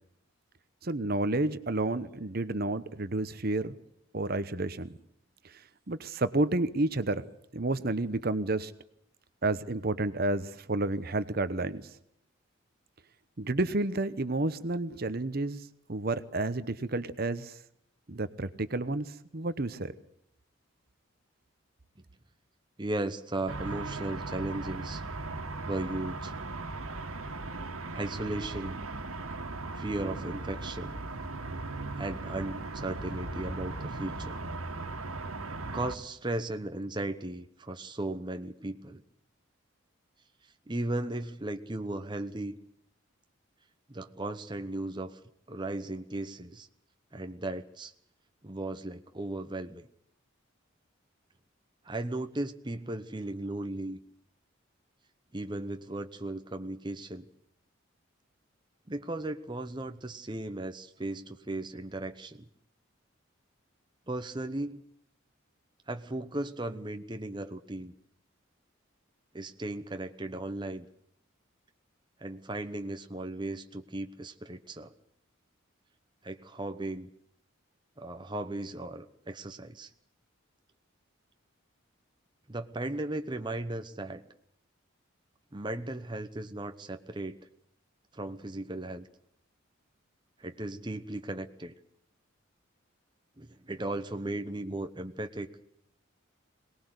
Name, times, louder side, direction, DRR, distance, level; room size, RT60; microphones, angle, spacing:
voice 1, 0.8-3.7 4.1-4.9 5.4-5.6 5.9-7.3 7.5-8.7 9.4-11.8 13.4-17.6 18.1-19.9, right 2 dB, 45° right, 12 dB, 0.9 m, -30 dB
voice 2, 22.8-25.0 25.6-26.3 27.9-28.8 29.8-31.0 32.0-34.4 35.7-39.0 40.7-42.5 43.9-45.2 45.5-46.7 47.1-47.9 48.4-49.9 51.8-54.0 55.3-57.3 58.9-62.5 64.1-64.8 65.9-67.9 69.3-70.9 72.2-74.9 76.2-77.1 78.0-79.9 82.5-84.2 85.5-87.4 88.1-89.1 90.4-91.7 93.4-95.5, right 2 dB, 20° right, 7 dB, 0.9 m, -36 dB
sound 1, 23.5-35.9, right 3 dB, 90° right, 1.9 m, -38 dB
22.5 x 19.5 x 8.1 m, 0.72 s
head